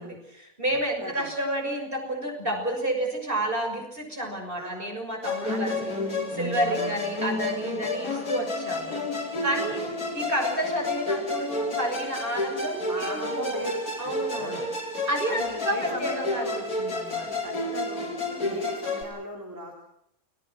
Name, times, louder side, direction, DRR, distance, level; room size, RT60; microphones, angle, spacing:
voice 1, 0.0-5.9 6.3-9.8 10.1-13.7 14.0-14.7 15.1-16.5 16.8-17.4 18.3-18.6, right 1 dB, 35° right, 2 dB, 6.7 m, -30 dB
voice 2, 0.7-1.3 4.5-4.8 5.5-5.9 6.6-7.0 8.0-8.2 9.3-9.7 12.9-14.7 15.3-16.6 17.2-18.1 18.4-19.7, equal, 10° right, -1 dB, 3.9 m, -37 dB
Musical instrument, 5.2-19.0, left 2 dB, 65° left, 5.1 m, -31 dB
29.5 x 21.0 x 6.4 m, 0.75 s
omnidirectional pair, 1.7 m